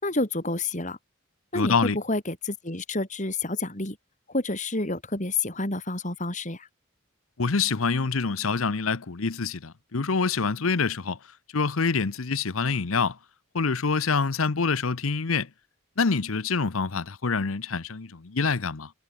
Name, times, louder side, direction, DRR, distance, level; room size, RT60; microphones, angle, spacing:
voice 1, 0.0-1.0 1.5-4.0 4.3-6.7, left 2 dB, 35° left, 4.6 m, -29 dB
voice 2, 1.5-2.0 7.4-11.2 11.5-13.2 13.5-15.5 16.0-18.9, left 4 dB, 80° left, 0.9 m, -26 dB
head